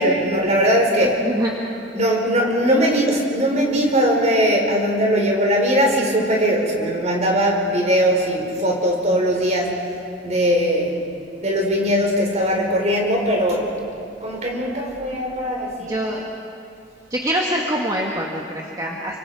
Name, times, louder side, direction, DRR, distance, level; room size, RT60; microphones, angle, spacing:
voice 1, 0.0-1.2 1.9-9.8 10.2-10.9 11.4-13.7 14.2-16.0, equal, 40° right, 0 dB, 4.5 m, -20 dB
voice 2, 1.0-1.5 15.9-16.2 17.1-19.2, equal, 20° right, -1 dB, 1.7 m, -24 dB
29.0 x 25.0 x 4.8 m, 2.5 s
head